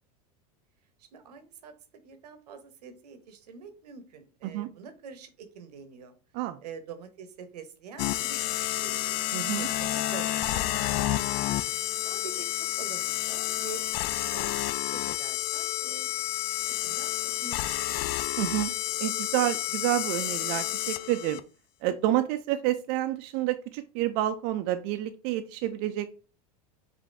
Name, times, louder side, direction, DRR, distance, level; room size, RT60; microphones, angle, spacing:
voice 1, 1.0-6.1 6.6-11.0 11.3-11.4 12.0-17.9, right 6 dB, 85° right, 9 dB, 0.9 m, -46 dB
sound 1, 8.0-21.4, left 14 dB, 50° left, 0.4 m, -30 dB
voice 2, 9.3-9.7 18.4-18.7 19.0-21.4 21.8-26.1, right 14 dB, 50° right, 8 dB, 0.4 m, -29 dB
5.1 x 2.7 x 3.3 m, 0.36 s
hypercardioid pair, 100°, 20 cm